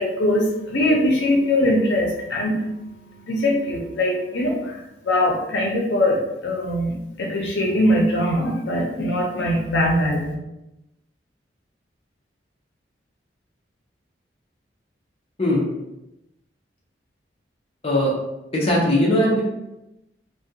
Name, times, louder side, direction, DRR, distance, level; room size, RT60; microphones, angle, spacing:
voice 1, 0.0-2.6 3.3-10.3, left 1 dB, 80° left, -1 dB, 0.6 m, -22 dB
voice 2, 18.5-19.4, left 1 dB, 35° left, -3 dB, 0.6 m, -19 dB
2.4 x 2.2 x 2.7 m, 0.93 s
head